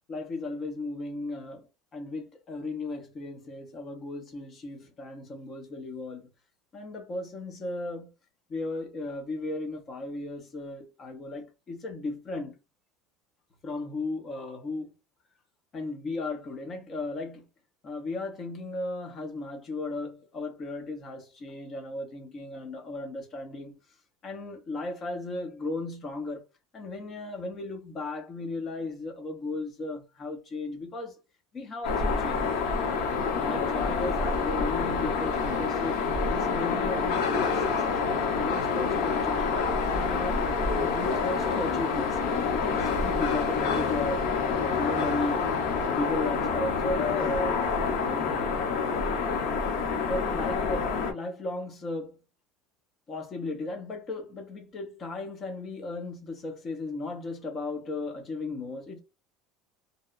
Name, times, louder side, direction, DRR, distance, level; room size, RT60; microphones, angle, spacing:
voice 1, 0.1-1.7 1.9-6.2 6.7-8.1 8.5-12.5 13.6-14.9 15.7-17.4 17.8-23.8 24.2-26.4 26.7-31.2 31.5-32.4 33.4-36.0 36.3-39.5 39.9-40.4 40.7-44.3 44.6-45.5 45.8-47.6 48.0-48.5 50.1-52.2 53.1-59.0, left 2 dB, 25° left, 0.5 m, -35 dB
City Sound at night, 31.8-51.1, left 5 dB, 70° left, 0.7 m, -27 dB
2.7 x 2.0 x 2.4 m
cardioid pair, 175°, 0 cm